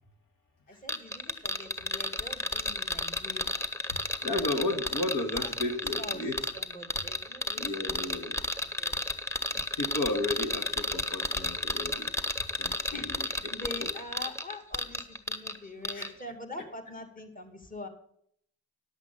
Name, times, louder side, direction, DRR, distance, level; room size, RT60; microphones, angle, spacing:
voice 1, 0.7-3.6 4.7-6.2 6.5-8.0 8.5-9.1 12.9-17.9, left 2 dB, 25° left, 5 dB, 2.1 m, -44 dB
sound 1, 0.9-15.6 15.8-16.1, left 1 dB, 10° left, 1.2 m, -32 dB
voice 2, 4.2-6.4 7.6-8.4 9.8-12.1 12.6-13.3 13.6-13.9 15.9-16.1, left 2 dB, 65° left, 5 dB, 1.7 m, -33 dB
11.0 x 8.2 x 5.4 m, 0.67 s
supercardioid pair, 55°, 35 cm